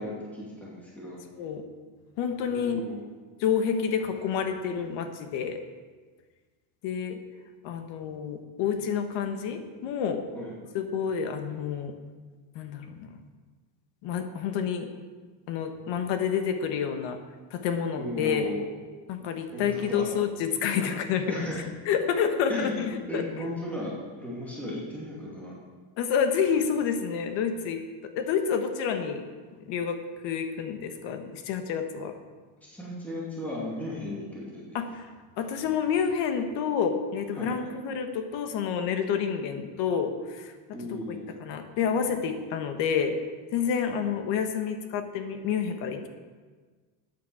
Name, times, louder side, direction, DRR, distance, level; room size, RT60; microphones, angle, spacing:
voice 1, 0.0-1.2 2.5-3.0 10.3-10.5 18.0-18.7 19.5-20.1 21.3-21.7 22.5-22.7 23.1-25.5 32.6-34.8 37.4-37.5 40.7-41.3 43.8-43.9, left 1 dB, 5° left, -6 dB, 2.5 m, -36 dB
voice 2, 2.2-2.8 3.4-5.6 6.8-7.2 7.6-10.2 10.7-11.9 12.5-13.2 14.0-14.9 15.5-17.2 17.5-18.5 19.1-21.5 21.9-23.2 26.0-29.2 29.6-32.1 34.7-35.0 35.4-40.5 40.9-43.2 43.5-46.1, left 7 dB, 60° left, 7 dB, 1.4 m, -29 dB
14.0 x 9.4 x 4.8 m, 1.4 s
cardioid pair, 175°, 50 cm